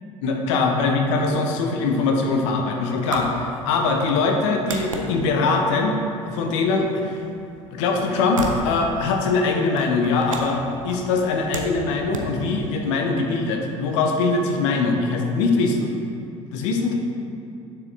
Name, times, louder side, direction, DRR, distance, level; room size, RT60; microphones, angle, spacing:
voice 1, 0.2-6.0 6.3-7.2 7.7-15.9 16.5-16.9, left 3 dB, 65° left, 2 dB, 1.0 m, -22 dB
sound 1, 1.4-13.2, right 2 dB, 90° right, 0.6 m, -36 dB
9.5 x 6.7 x 2.7 m, 2.8 s
figure-of-eight pair, 60°, 17 cm